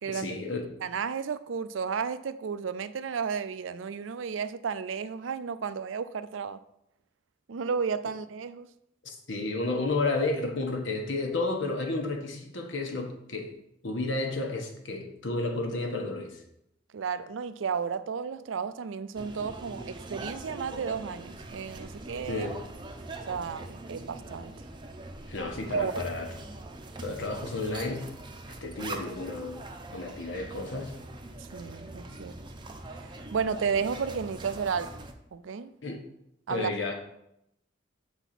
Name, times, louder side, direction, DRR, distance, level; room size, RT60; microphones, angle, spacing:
voice 1, 0.0-0.6 9.0-13.5 13.8-16.4 22.3-22.6 25.3-26.3 27.0-28.1 28.5-29.6 29.9-30.9 35.8-36.0 36.5-36.9, left 2 dB, 80° left, 1.3 m, -32 dB
voice 2, 0.8-6.6 7.5-8.7 16.9-22.5 23.3-24.5 25.7-26.0 31.5-32.3 33.3-35.0 35.3-35.7 36.5-36.7, right 6 dB, 85° right, 0.4 m, -33 dB
sound 1, 19.1-35.1, right 2 dB, 25° right, 0.7 m, -42 dB
6.9 x 4.1 x 5.8 m
head